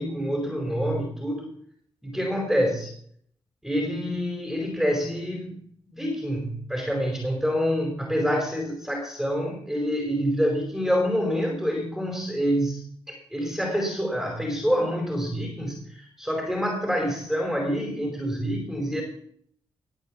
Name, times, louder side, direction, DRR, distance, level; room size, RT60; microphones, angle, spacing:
voice 1, 0.0-1.5 2.0-2.9 3.6-5.6 5.9-12.8 13.1-19.0, equal, ahead, 0 dB, 4.8 m, -27 dB
20.5 x 7.0 x 7.4 m, 0.64 s
cardioid pair, 70°, 10 cm